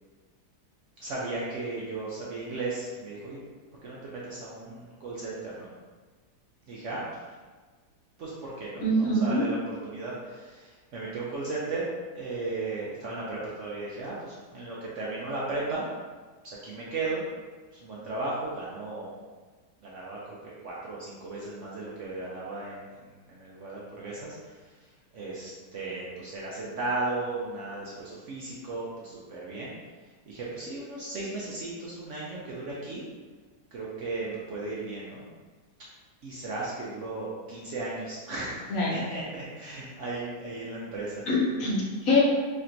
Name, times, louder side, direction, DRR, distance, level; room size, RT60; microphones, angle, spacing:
voice 1, 1.0-3.4 3.8-5.7 6.7-7.3 8.2-11.8 12.1-15.9 16.4-17.2 17.7-19.1 19.8-20.2 20.6-22.8 23.3-24.5 25.1-29.7 30.3-33.1 33.7-35.3 36.2-41.2, right 3 dB, 60° right, -6 dB, 0.8 m, -35 dB
voice 2, 8.8-9.5 38.7-38.9 41.3-42.2, left 1 dB, 65° left, -4 dB, 1.1 m, -24 dB
4.3 x 3.3 x 2.5 m, 1.4 s
omnidirectional pair, 1.8 m